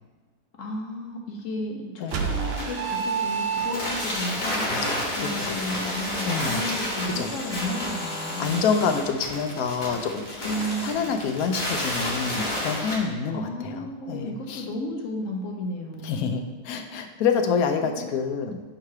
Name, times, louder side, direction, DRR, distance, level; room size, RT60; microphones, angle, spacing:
voice 1, 0.6-4.8 5.2-8.5 10.4-11.1 13.3-16.3 17.8-18.2, left 1 dB, 65° left, 1 dB, 1.1 m, -33 dB
sound 1, 2.1-13.0, left 1 dB, 35° left, 1.2 m, -31 dB
sound 2, 2.1-4.2, right 6 dB, 60° right, 0.7 m, -28 dB
voice 2, 4.7-5.8 6.2-6.6 7.2-7.4 8.4-10.5 10.8-14.6 16.0-18.6, left 5 dB, 85° left, 6 dB, 1.1 m, -27 dB
4.7 x 3.8 x 5.7 m, 1.3 s
omnidirectional pair, 1.5 m